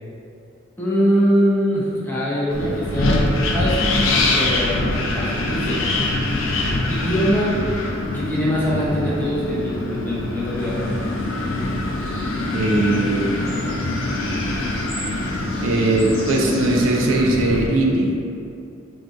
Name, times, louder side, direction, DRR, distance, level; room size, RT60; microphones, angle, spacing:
voice 1, 0.8-3.3 3.5-5.8 6.9-7.5 8.1-10.8, equal, 10° left, -8 dB, 0.5 m, -22 dB
Wind, 2.5-17.7, left 2 dB, 65° left, 0.4 m, -24 dB
sound 1, 10.6-16.7, equal, 80° left, 0.8 m, -39 dB
voice 2, 12.5-13.3 15.6-18.2, right 2 dB, 70° right, -1 dB, 0.4 m, -19 dB
2.6 x 2.3 x 3.6 m, 2.5 s
head